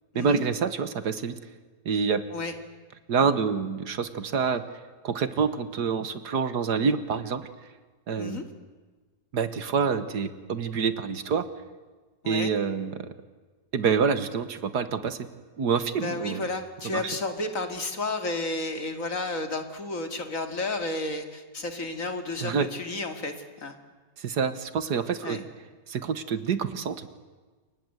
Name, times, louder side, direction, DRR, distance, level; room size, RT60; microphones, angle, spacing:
voice 1, 0.2-1.4 1.9-2.2 3.1-4.6 5.0-7.5 8.1-8.4 9.3-11.5 12.3-13.1 13.7-15.2 15.6-16.5 16.8-17.1 22.4-22.7 24.2-25.4 25.9-27.1, right 6 dB, 65° right, 12 dB, 1.9 m, -27 dB
voice 2, 16.0-23.8 25.2-25.4, left 2 dB, 45° left, 7 dB, 2.7 m, -32 dB
28.5 x 23.5 x 8.0 m, 1.3 s
omnidirectional pair, 1.9 m